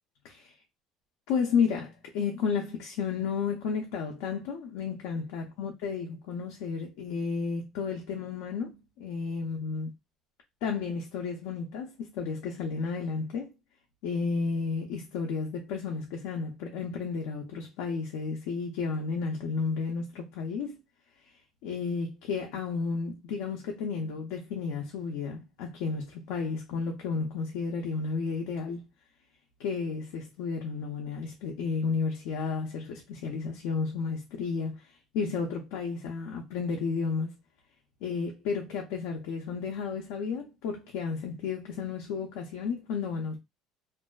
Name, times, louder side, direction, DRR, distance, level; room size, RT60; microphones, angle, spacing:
voice 1, 1.3-9.9 10.6-13.5 14.0-20.8 21.6-28.8 29.6-34.8 35.1-37.3 38.0-43.4, left 5 dB, 90° left, 0.5 m, -32 dB
2.5 x 2.2 x 2.2 m
cardioid pair, 170°, 0 cm